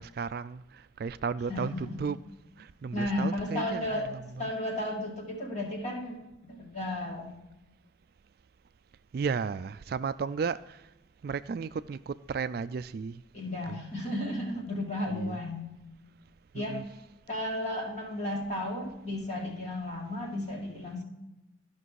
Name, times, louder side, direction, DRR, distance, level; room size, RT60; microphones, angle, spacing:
voice 1, 0.0-2.2 2.6-4.5 9.1-10.9 11.2-13.2 13.7-13.8 15.1-15.4 16.5-16.8, right 5 dB, 50° right, 0.3 m, -34 dB
voice 2, 1.5-2.1 2.9-4.1 4.4-7.4 13.3-15.7 16.5-16.8 17.3-21.0, left 1 dB, 35° left, 2.4 m, -34 dB
12.5 x 6.0 x 4.7 m
head